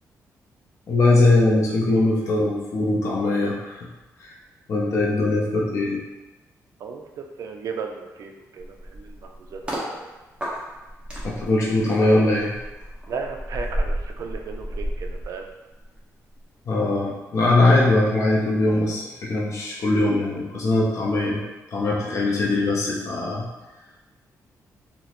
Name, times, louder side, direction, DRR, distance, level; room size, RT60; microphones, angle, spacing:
voice 1, 0.9-3.9 4.2-4.3 4.7-6.0 11.2-12.5 16.7-21.4 21.7-23.5, left 2 dB, 55° left, -4 dB, 0.6 m, -21 dB
voice 2, 6.8-10.1 13.1-15.5 22.0-22.2, right 5 dB, 65° right, 3 dB, 0.4 m, -35 dB
sound 1, 8.6-9.9 10.4-16.0 16.3-16.6, equal, 15° right, 0.9 m, -32 dB
3.0 x 2.0 x 4.0 m, 1.1 s
cardioid pair, 115°, 6 cm